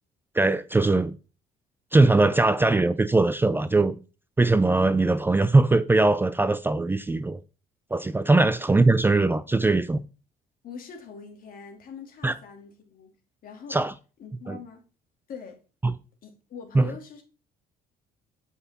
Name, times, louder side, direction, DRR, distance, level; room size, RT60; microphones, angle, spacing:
voice 1, 0.3-1.1 1.9-4.0 4.4-7.4 7.9-10.0 12.2-12.3 13.7-13.9 14.5-14.6 15.8-15.9 16.7-16.9, right 2 dB, 10° right, 0.5 m, -21 dB
voice 2, 10.6-13.1 13.4-13.8 14.2-14.8 15.3-15.6 16.2-17.2, left 6 dB, 55° left, 2.4 m, -43 dB
8.1 x 5.6 x 4.2 m
cardioid pair, 110°, 17 cm